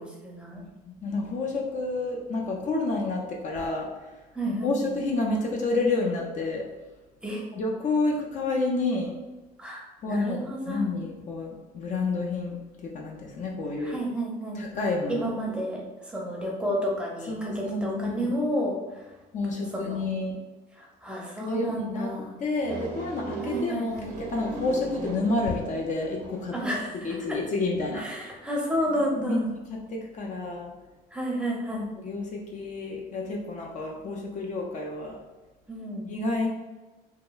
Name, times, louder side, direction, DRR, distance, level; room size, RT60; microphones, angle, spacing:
voice 1, 0.0-0.6 4.3-4.9 7.2-7.4 9.6-10.9 13.8-14.6 15.1-15.8 16.1-19.1 19.7-20.1 20.8-22.3 23.4-24.1 26.5-27.2 27.9-29.5 31.1-31.9 35.7-36.1, equal, 5° right, -3 dB, 0.6 m, -31 dB
voice 2, 0.5-3.9 4.5-6.6 7.5-9.1 10.0-12.6 12.8-14.0 14.5-15.3 17.3-18.4 19.3-20.4 21.4-28.1 28.9-30.7 31.7-35.2 36.1-36.5, left 3 dB, 45° left, 0 dB, 0.4 m, -29 dB
sound 1, 22.6-26.7, right 3 dB, 65° right, 0.6 m, -37 dB
2.9 x 2.2 x 2.3 m, 1.2 s
cardioid pair, 110°, 17 cm